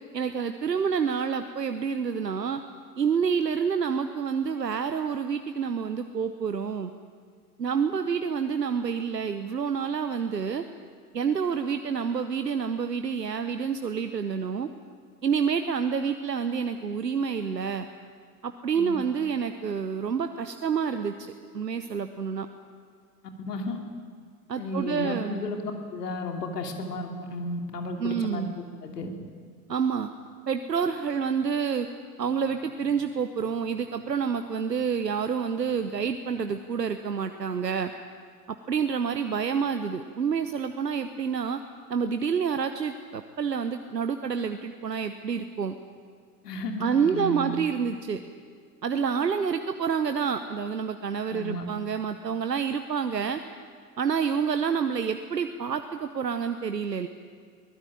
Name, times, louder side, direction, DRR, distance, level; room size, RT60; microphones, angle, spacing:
voice 1, 0.1-2.6 3.0-6.9 7.6-10.6 11.1-14.7 15.2-17.9 18.4-21.1 21.5-22.5 24.5-25.4 28.0-28.5 29.7-30.1 30.5-31.9 32.2-37.9 38.7-41.6 41.9-45.8 46.8-48.2 48.8-53.4 54.0-57.1, right 6 dB, 90° right, 9 dB, 1.0 m, -28 dB
voice 2, 23.5-23.8 24.6-25.6 25.9-28.4 28.8-29.1 46.4-47.5 51.3-51.7, left 2 dB, 75° left, 4 dB, 3.1 m, -33 dB
23.0 x 18.5 x 9.0 m, 2.1 s
figure-of-eight pair, 80°, 48 cm